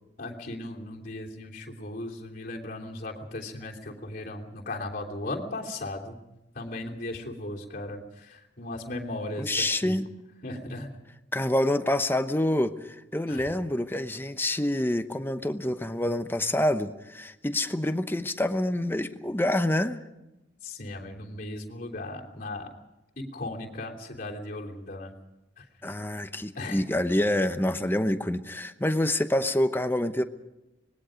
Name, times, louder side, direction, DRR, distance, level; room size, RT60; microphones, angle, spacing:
voice 1, 0.2-6.2 6.5-10.0 10.4-10.9 13.3-13.5 20.6-22.7 23.2-25.1 25.6-25.7 26.5-26.8, left 2 dB, 50° left, -1 dB, 3.1 m, -37 dB
voice 2, 9.4-10.1 11.3-20.0 25.8-30.2, left 1 dB, 10° left, 9 dB, 0.9 m, -27 dB
25.5 x 20.0 x 5.1 m, 0.97 s
head